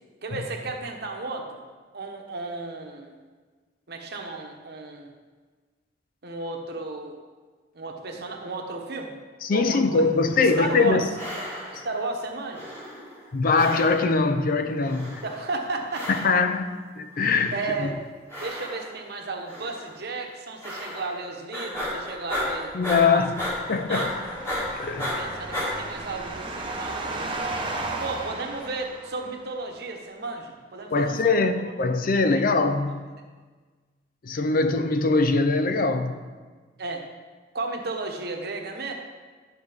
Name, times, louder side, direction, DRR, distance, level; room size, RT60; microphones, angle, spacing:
voice 1, 0.2-1.6 1.9-3.2 3.9-5.1 6.2-7.1 7.7-9.2 9.5-10.0 10.4-11.0 11.8-12.7 15.2-16.3 17.5-17.9 18.4-22.7 23.0-23.2 23.9-24.1 25.0-27.4 28.0-31.3 32.3-32.4 36.8-37.0 37.5-38.9, right 3 dB, 65° right, 1.1 m, -33 dB
voice 2, 9.4-11.1 13.3-15.2 16.1-17.5 17.8-17.9 22.7-23.3 23.7-24.1 24.7-25.2 30.9-33.1 34.2-36.2, left 3 dB, 50° left, 0.5 m, -22 dB
sound 1, 10.1-10.9 11.1-12.0 12.5-13.3 13.5-14.3 14.8-15.5 15.9-16.6 17.1-17.8 18.3-19.1 19.5-19.9 20.6-21.2 21.5-25.7, left 1 dB, 15° left, 2.0 m, -34 dB
sound 2, 23.3-29.5, right 2 dB, 30° right, 0.9 m, -35 dB
10.5 x 6.5 x 3.5 m
head